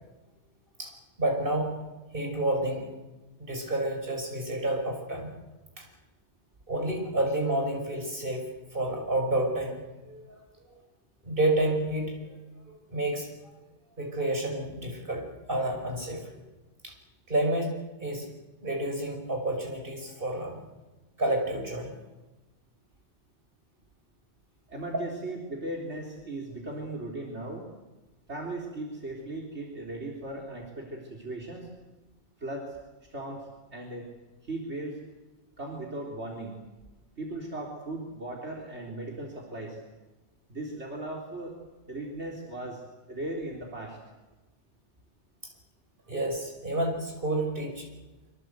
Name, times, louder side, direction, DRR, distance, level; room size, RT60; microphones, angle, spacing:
voice 1, 1.2-1.7 2.1-2.9 3.4-5.3 5.8-5.9 6.7-8.4 8.7-9.8 10.1-10.4 11.2-12.2 12.9-13.3 14.0-16.4 16.8-16.9 17.3-17.7 18.0-18.3 18.6-20.6 21.2-21.9 46.1-47.9, right 1 dB, 45° right, 2 dB, 6.0 m, -29 dB
voice 2, 24.7-27.6 28.3-31.7 32.4-32.8 33.1-34.1 34.4-35.0 35.6-36.6 37.2-39.8 40.5-41.5 41.9-42.8 43.1-44.0, right 2 dB, 70° right, -1 dB, 3.9 m, -37 dB
25.0 x 25.0 x 8.1 m, 1.1 s
omnidirectional pair, 1.2 m